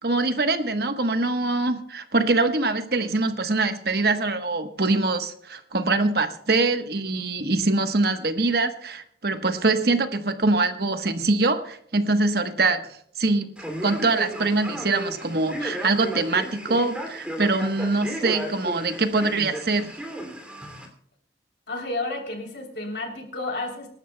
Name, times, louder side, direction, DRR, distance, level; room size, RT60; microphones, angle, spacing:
voice 1, 0.0-13.5 13.8-19.9, right 3 dB, 60° right, 8 dB, 1.2 m, -23 dB
Male speech man speaking, 13.6-20.9, equal, 5° right, 2.7 m, -34 dB
voice 2, 21.7-23.9, left 2 dB, 75° left, 2 dB, 3.3 m, -31 dB
26.5 x 12.0 x 2.3 m, 0.67 s
head